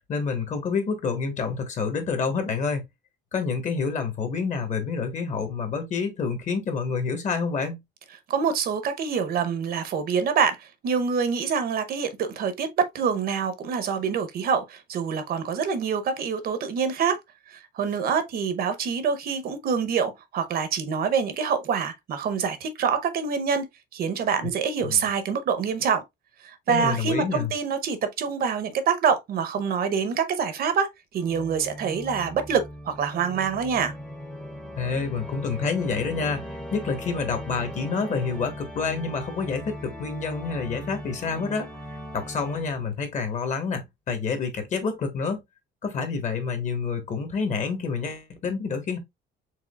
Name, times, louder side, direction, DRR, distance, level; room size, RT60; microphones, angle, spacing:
voice 1, 0.1-2.8 3.3-7.8 24.8-25.0 26.7-27.5 34.8-41.7 42.1-45.4 45.8-49.0, left 5 dB, 40° left, 1.2 m, -28 dB
voice 2, 8.3-12.7 12.9-17.2 17.5-23.6 23.9-26.0 26.4-30.9 31.1-33.9, right 6 dB, 50° right, 0.8 m, -26 dB
Organ, 31.2-43.0, equal, 5° left, 0.7 m, -38 dB
4.8 x 3.6 x 2.3 m
cardioid pair, 165°, 19 cm